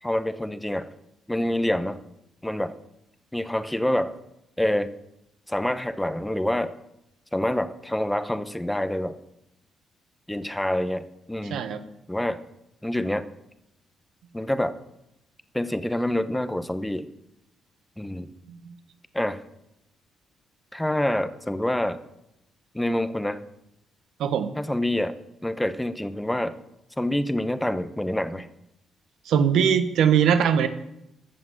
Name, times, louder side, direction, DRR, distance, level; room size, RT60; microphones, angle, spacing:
voice 1, 0.0-0.9 1.3-2.0 2.4-2.7 3.3-4.2 4.6-4.9 5.5-6.7 7.3-9.2 10.3-11.6 12.1-12.4 12.8-13.2 14.3-14.8 15.5-17.1 18.0-18.3 19.1-19.4 20.7-22.0 22.7-23.4 24.6-25.1 25.4-26.5 27.0-28.5, left 1 dB, 5° left, 11 dB, 1.0 m, -26 dB
voice 2, 11.5-11.8 18.5-18.7 24.2-24.5 29.2-30.7, right 8 dB, 80° right, 9 dB, 1.3 m, -21 dB
14.5 x 7.3 x 7.3 m, 0.84 s
cardioid pair, 90°, 0 cm